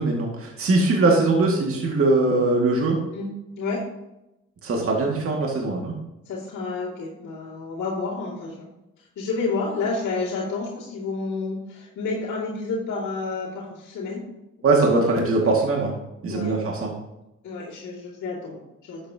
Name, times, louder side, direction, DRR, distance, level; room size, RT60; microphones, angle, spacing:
voice 1, 0.0-3.0 4.6-5.9 14.6-15.9 16.2-16.9, right 3 dB, 45° right, -1 dB, 2.1 m, -21 dB
voice 2, 3.1-3.9 6.3-8.7 9.2-14.2 14.6-14.9 16.3-16.6 17.4-19.1, left 3 dB, 70° left, -7 dB, 2.6 m, -30 dB
11.0 x 8.6 x 2.9 m, 0.94 s
cardioid pair, 90°, 30 cm